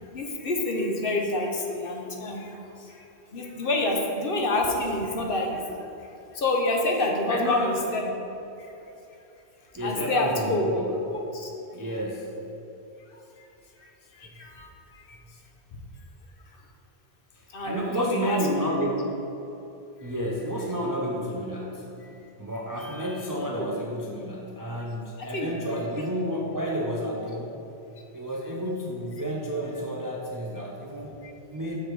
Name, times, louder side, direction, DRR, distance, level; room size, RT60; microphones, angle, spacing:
voice 1, 0.1-8.1 8.6-8.7 9.8-10.7 11.1-11.5 13.1-13.5 13.8-15.2 16.5-16.6 17.5-18.4 20.0-20.1 22.0-22.2 22.8-23.0 23.5-23.7 25.2-25.5 31.2-31.3, left 2 dB, 55° left, 1 dB, 0.9 m, -29 dB
voice 2, 7.3-7.8 9.7-10.9 11.7-12.3 17.3-19.2 20.0-27.6 28.1-31.8, equal, 30° right, -2 dB, 0.4 m, -31 dB
5.9 x 5.0 x 4.6 m, 3.0 s
omnidirectional pair, 1.1 m